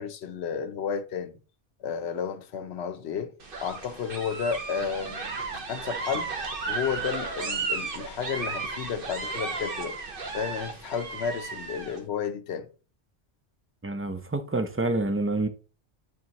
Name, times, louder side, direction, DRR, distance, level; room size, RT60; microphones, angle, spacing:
voice 1, 0.0-1.3 1.8-3.3 3.6-5.2 5.7-6.3 6.7-10.0 10.3-12.7, left 7 dB, 70° left, 1.0 m, -32 dB
sound 1, 3.4-12.0, right 4 dB, 55° right, 1.2 m, -34 dB
voice 2, 13.8-15.5, right 2 dB, 20° right, 0.4 m, -27 dB
9.5 x 3.6 x 2.9 m
omnidirectional pair, 1.1 m